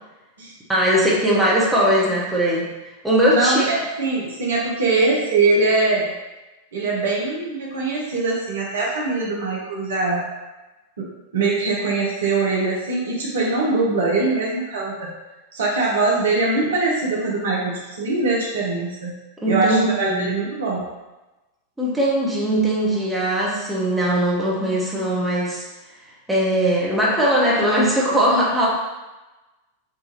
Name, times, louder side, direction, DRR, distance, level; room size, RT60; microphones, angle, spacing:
voice 1, 0.7-2.6 3.0-3.6 19.4-20.3 21.8-25.6 26.3-28.7, right 1 dB, 5° right, -6 dB, 1.2 m, -20 dB
voice 2, 3.3-6.1 6.7-10.3 11.0-15.1 15.5-19.1 19.5-20.8, right 3 dB, 65° right, -4 dB, 0.9 m, -22 dB
4.6 x 2.6 x 3.0 m, 1.1 s
figure-of-eight pair, 90°, 0 cm